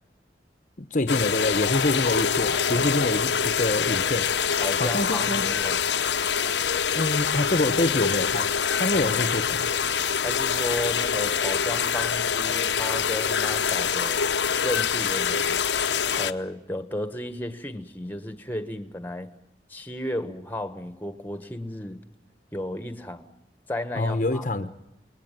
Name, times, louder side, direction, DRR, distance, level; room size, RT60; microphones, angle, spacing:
voice 1, 0.9-4.3 4.8-5.4 6.9-8.5 8.8-9.7 23.9-24.7, left 2 dB, 45° left, 1.0 m, -26 dB
sound 1, 1.1-16.3, left 7 dB, 80° left, 0.9 m, -25 dB
voice 2, 2.5-2.9 4.6-5.8 8.9-9.1 10.2-14.2 14.6-15.6 16.2-19.3 19.7-22.0 22.5-23.3 23.7-24.7, left 1 dB, 10° left, 1.4 m, -33 dB
29.0 x 20.0 x 9.1 m
head